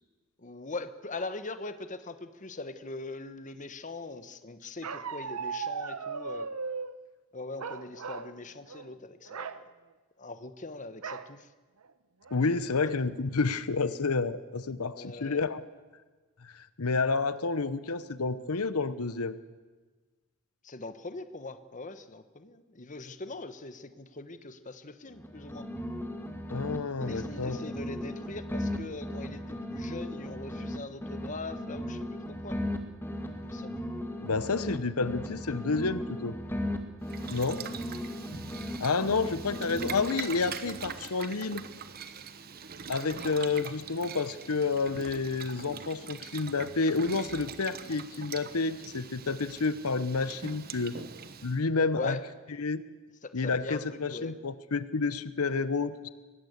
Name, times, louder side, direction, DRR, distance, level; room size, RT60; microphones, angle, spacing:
voice 1, 0.4-6.5 7.3-9.6 10.2-11.5 15.0-15.4 20.6-25.7 27.0-32.1 32.4-32.6 33.4-33.7 51.9-52.2 53.2-54.3, left 3 dB, 35° left, 10 dB, 1.1 m, -41 dB
Bark, 4.8-6.9 7.6-8.3 8.7-8.9 9.3-9.6 11.0-11.3 11.8-11.9 12.3-12.7, right 5 dB, 90° right, 1.0 m, -37 dB
voice 2, 12.3-15.6 16.4-19.4 26.5-27.6 34.2-36.4 37.3-37.7 38.8-41.6 42.9-51.0 51.4-52.2 52.6-52.8 53.3-56.1, left 4 dB, 85° left, 14 dB, 1.0 m, -30 dB
sound 1, 25.1-26.8 27.0-30.8 31.0-34.8 35.0-38.8 39.0-40.4, left 1 dB, 10° left, 2.0 m, -37 dB
Boiling, 37.0-51.6, right 6 dB, 45° right, 1.1 m, -43 dB
24.0 x 19.0 x 8.1 m, 1.3 s
head